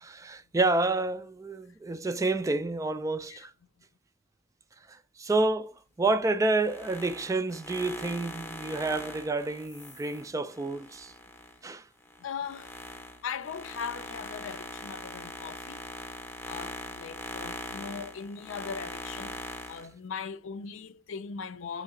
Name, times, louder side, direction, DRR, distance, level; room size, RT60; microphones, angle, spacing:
voice 1, 0.0-3.5 4.9-11.1 11.6-11.8, right 2 dB, 15° right, 0.3 m, -29 dB
sound 1, 6.5-11.6 12.0-19.9, left 1 dB, 10° left, 0.7 m, -41 dB
voice 2, 12.2-12.7 13.2-15.8 16.5-19.4 19.7-21.8, left 6 dB, 70° left, 0.5 m, -39 dB
3.9 x 3.2 x 3.6 m
head